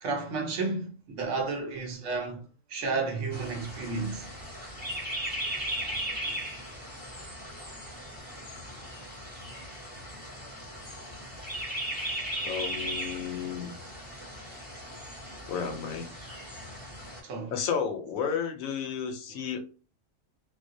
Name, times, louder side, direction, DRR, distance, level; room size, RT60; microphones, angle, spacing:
voice 1, 0.0-2.4 2.7-4.3 17.2-17.5, right 4 dB, 70° right, 0.9 m, -32 dB
sound 1, 3.3-17.2, equal, 10° right, 0.8 m, -38 dB
voice 2, 12.4-13.7 15.5-16.1 17.5-19.6, left 7 dB, 85° left, 1.0 m, -32 dB
2.4 x 2.0 x 2.5 m
omnidirectional pair, 1.4 m